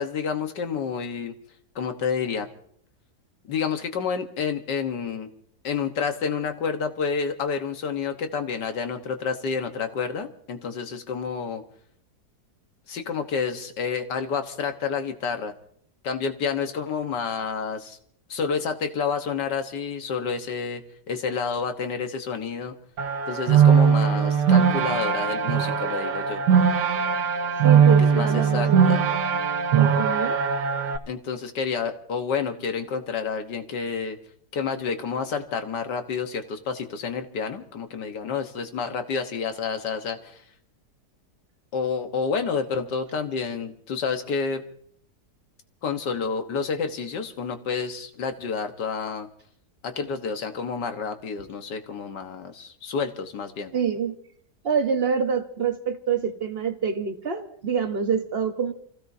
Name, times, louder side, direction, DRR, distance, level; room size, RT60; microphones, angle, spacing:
voice 1, 0.0-1.4 1.8-2.5 3.5-5.3 5.6-11.6 12.9-15.5 16.0-18.0 18.3-22.7 23.3-26.4 28.0-29.0 31.1-34.2 34.5-40.4 41.7-44.7 45.8-49.3 49.8-53.7, left 5 dB, 90° left, 7 dB, 1.9 m, -29 dB
sound 1, 23.0-31.0, right 7 dB, 85° right, 1.7 m, -20 dB
voice 2, 27.6-29.0 29.7-30.3 53.7-54.1 54.6-58.7, right 6 dB, 40° right, 7 dB, 1.3 m, -26 dB
28.5 x 16.0 x 2.7 m, 0.63 s
omnidirectional pair, 1.8 m